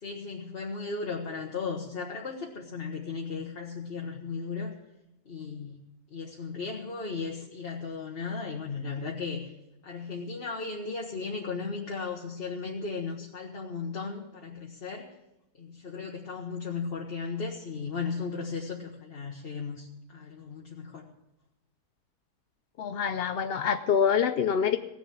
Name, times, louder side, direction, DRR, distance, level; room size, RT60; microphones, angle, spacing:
voice 1, 0.0-4.7 5.3-5.8 6.1-9.5 9.8-15.1 15.6-21.1, left 4 dB, 40° left, -1 dB, 1.4 m, -36 dB
voice 2, 22.8-24.8, left 7 dB, 65° left, 8 dB, 0.6 m, -26 dB
17.0 x 7.2 x 8.7 m, 0.90 s
omnidirectional pair, 1.7 m